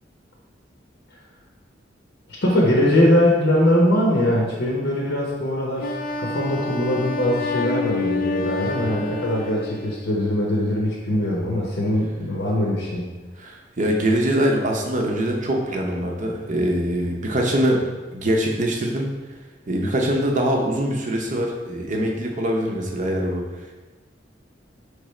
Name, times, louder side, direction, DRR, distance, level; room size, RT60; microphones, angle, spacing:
voice 1, 2.4-13.1, left 1 dB, 70° left, -3 dB, 0.8 m, -21 dB
Wind instrument woodwind instrument, 5.8-10.1, left 3 dB, 50° left, 0.3 m, -28 dB
voice 2, 13.4-17.8 18.1-19.1 19.7-23.4, equal, 45° right, 1 dB, 0.6 m, -23 dB
5.0 x 3.3 x 3.1 m, 1.2 s
head